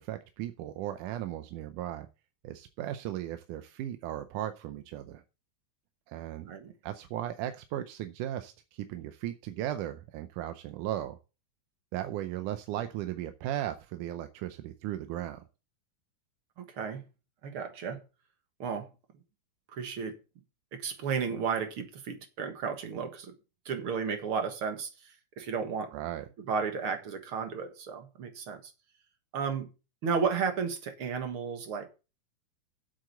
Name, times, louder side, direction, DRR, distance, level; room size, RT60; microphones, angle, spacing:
voice 1, 0.0-2.1 2.4-5.2 6.1-6.5 6.8-11.2 11.9-15.4 25.9-26.3, right 12 dB, 90° right, 2.3 m, -36 dB
voice 2, 16.6-17.0 17.4-18.0 18.6-18.9 19.7-20.2 20.7-23.4 23.7-25.9 26.5-28.7 29.3-29.7 30.0-31.9, right 6 dB, 50° right, 2.1 m, -33 dB
8.0 x 7.6 x 6.7 m
omnidirectional pair, 3.5 m